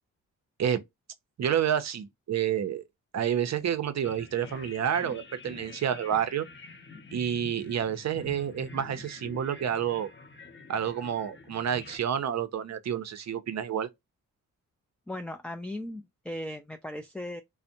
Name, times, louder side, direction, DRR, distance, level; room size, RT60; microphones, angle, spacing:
voice 1, 1.4-2.8 3.1-6.5 7.1-10.1 10.7-13.9, right 9 dB, 50° right, 0.6 m, -29 dB
sound 1, 4.0-12.0, left 3 dB, 30° left, 0.7 m, -47 dB
voice 2, 15.1-17.4, left 1 dB, 5° left, 0.3 m, -37 dB
2.5 x 2.1 x 2.7 m
supercardioid pair, 45°, 36 cm